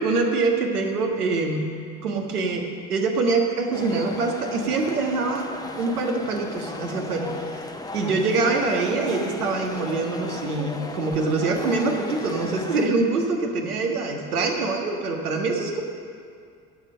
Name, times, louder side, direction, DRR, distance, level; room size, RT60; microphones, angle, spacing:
voice 1, 0.0-1.7 2.0-2.6 2.9-5.4 5.8-7.3 7.9-15.8, right 3 dB, 80° right, 2 dB, 1.6 m, -24 dB
sound 1, 3.7-12.9, left 2 dB, 10° left, 0.9 m, -36 dB
18.5 x 7.4 x 6.4 m, 2.3 s
figure-of-eight pair, 60°, 45 cm